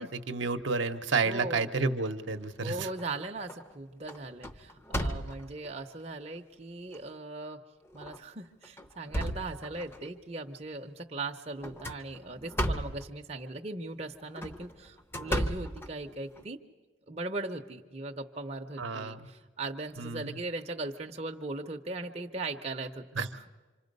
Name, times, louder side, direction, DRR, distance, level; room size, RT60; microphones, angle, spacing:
voice 1, 0.0-2.9 18.8-19.2 20.0-20.4 23.2-23.3, right 4 dB, 65° right, 8 dB, 0.8 m, -31 dB
voice 2, 1.2-1.7 2.6-7.6 7.9-16.6 17.1-23.5, right 2 dB, 30° right, 2 dB, 0.7 m, -39 dB
sound 1, 2.5-3.0 3.5-3.7 4.1-5.7 6.4-6.5 6.9-7.0 7.9-8.2 8.6-10.1 11.6-13.1 14.2-16.4, equal, 10° left, 0.7 m, -34 dB
26.0 x 25.5 x 5.3 m, 1.3 s
head